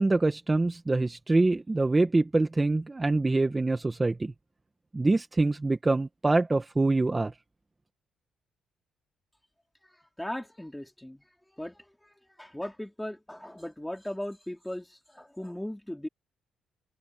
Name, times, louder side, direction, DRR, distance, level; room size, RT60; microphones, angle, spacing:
voice 1, 0.0-4.3 4.9-7.3, right 2 dB, 20° right, 1.5 m, -25 dB
voice 2, 10.2-11.2 11.5-11.8 12.4-16.1, left 1 dB, 5° left, 3.2 m, -38 dB
cardioid pair, 90°, 0 cm